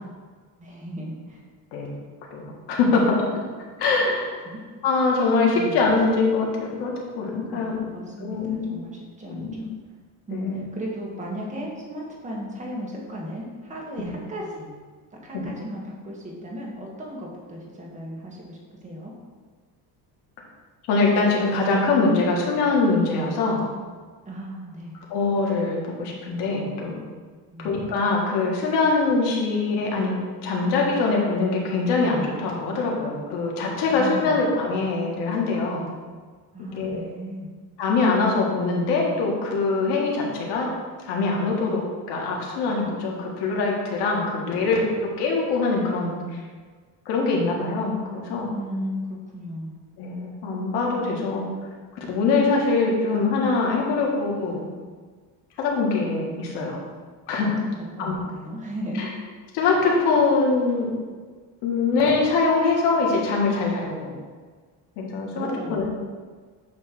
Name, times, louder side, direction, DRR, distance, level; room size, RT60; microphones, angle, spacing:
voice 1, 0.6-1.4 4.5-4.6 5.5-5.8 7.5-9.7 10.3-14.7 15.1-19.1 24.2-25.0 27.5-27.8 33.9-34.5 36.5-37.5 48.5-49.8 57.6-59.2 65.3-65.8, equal, 20° right, -3 dB, 1.4 m, -35 dB
voice 2, 2.3-3.3 3.8-4.3 4.8-7.9 8.2-8.8 9.3-9.6 10.3-10.6 14.0-14.1 15.3-15.4 20.9-23.6 25.1-27.0 27.6-30.1 30.4-35.8 36.7-37.0 37.8-40.7 41.0-41.8 42.1-44.9 45.2-46.4 47.1-48.5 50.0-51.5 52.1-54.7 55.6-56.8 57.3-57.6 58.0-58.2 59.0-59.1 59.5-60.9 61.6-64.1 65.0-65.9, left 3 dB, 90° left, -2 dB, 1.8 m, -23 dB
8.7 x 3.2 x 5.9 m, 1.5 s
cardioid pair, 165°, 39 cm